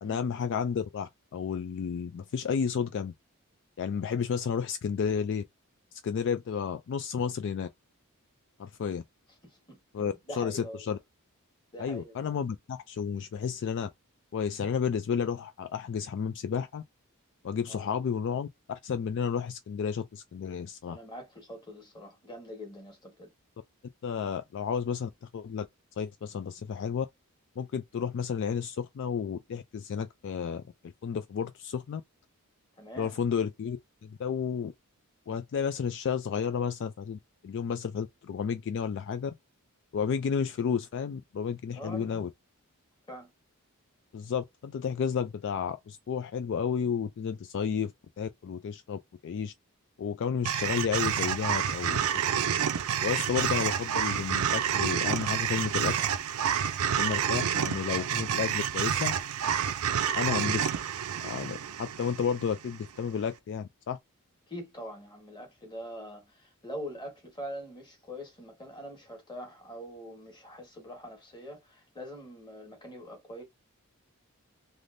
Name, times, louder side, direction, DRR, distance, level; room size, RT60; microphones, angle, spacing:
voice 1, 0.0-3.1 3.8-5.4 5.9-7.7 8.6-9.0 9.9-11.0 11.8-13.9 14.3-16.8 17.4-21.0 24.0-25.7 26.0-27.1 27.6-30.6 31.0-32.0 33.0-34.7 35.3-39.3 39.9-42.3 44.1-49.5 50.0-52.2 53.0-55.9 56.9-59.2 60.1-60.7 61.2-64.0, left 6 dB, 55° left, 0.3 m, -32 dB
voice 2, 9.4-11.0 11.7-12.4 17.7-17.9 20.9-23.3 32.8-33.1 41.7-42.2 43.1-43.3 64.5-73.4, equal, 20° left, 1.5 m, -44 dB
sound 1, 50.4-62.8, right 9 dB, 75° right, 0.5 m, -29 dB
3.5 x 2.5 x 2.6 m
head